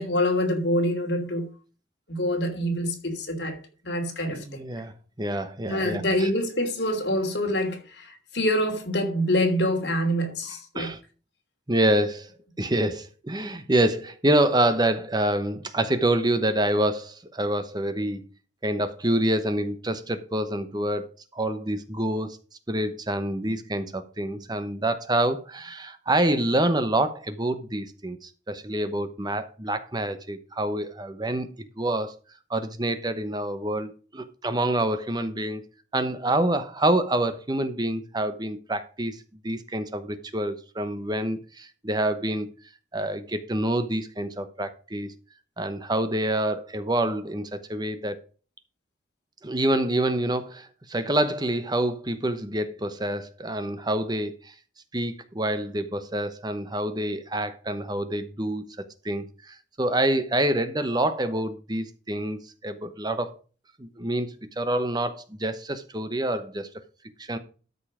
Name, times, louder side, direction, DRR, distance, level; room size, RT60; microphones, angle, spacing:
voice 1, 0.0-1.5 2.1-3.6 3.8-4.6 5.7-10.9, left 1 dB, 60° left, 2.8 m, -26 dB
voice 2, 4.3-6.3 10.5-11.0 11.7-18.3 18.6-22.4 22.7-31.5 31.8-32.2 32.5-35.6 35.9-42.5 42.9-45.1 45.6-48.2 49.4-54.5 54.9-63.4 63.8-66.7 67.2-67.4, right 1 dB, 20° right, 0.9 m, -27 dB
13.0 x 5.5 x 4.9 m
head